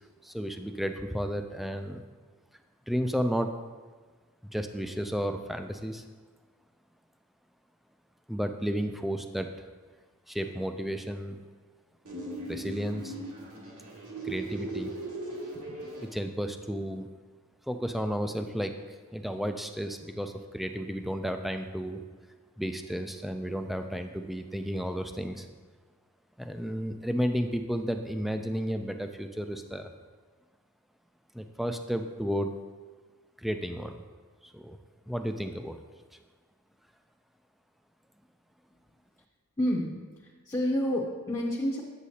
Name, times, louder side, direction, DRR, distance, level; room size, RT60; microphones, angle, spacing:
voice 1, 0.2-2.0 2.9-3.5 4.4-6.1 8.3-9.5 10.3-11.4 12.5-13.2 14.2-14.9 16.0-17.1 17.7-22.0 22.6-25.5 26.4-29.9 31.3-32.5 33.4-34.0 34.4-34.8 35.1-35.8, equal, ahead, 6 dB, 0.3 m, -32 dB
sound 1, 12.0-16.0, right 1 dB, 80° right, 2.1 m, -38 dB
voice 2, 39.6-41.8, equal, 20° left, -4 dB, 0.7 m, -29 dB
8.1 x 7.3 x 2.8 m, 1.4 s
head